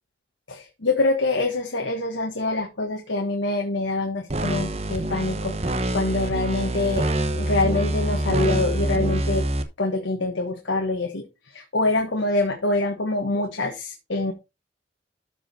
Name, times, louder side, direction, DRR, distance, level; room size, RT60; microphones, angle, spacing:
voice 1, 0.5-9.5 9.8-14.3, left 2 dB, 75° left, 1.4 m, -25 dB
sound 1, 4.3-9.6, right 1 dB, 35° right, 1.0 m, -25 dB
13.0 x 4.9 x 4.2 m
head